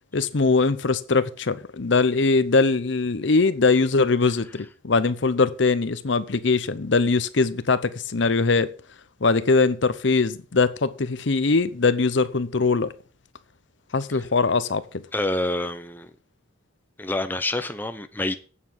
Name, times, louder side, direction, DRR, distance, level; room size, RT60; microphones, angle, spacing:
voice 1, 0.1-8.7 9.2-12.9 13.9-14.9, left 4 dB, 65° left, 0.8 m, -21 dB
voice 2, 15.1-16.1 17.0-18.3, left 1 dB, 10° left, 0.7 m, -27 dB
8.5 x 7.3 x 7.3 m
head